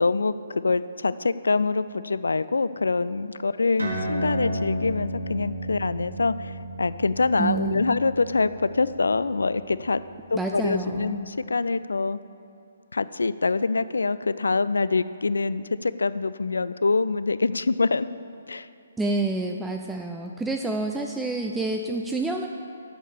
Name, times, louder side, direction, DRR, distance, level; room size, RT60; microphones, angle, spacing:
voice 1, 0.0-10.0 10.3-12.2 12.9-18.1 18.5-18.7, left 3 dB, 70° left, 15 dB, 0.3 m, -25 dB
sound 1, 3.8-10.7, right 1 dB, 80° right, 2.1 m, -34 dB
voice 2, 7.4-8.0 10.3-11.3 19.0-22.5, right 3 dB, 5° right, 2 dB, 0.4 m, -28 dB
8.6 x 6.4 x 6.9 m, 2.6 s
figure-of-eight pair, 135°, 0 cm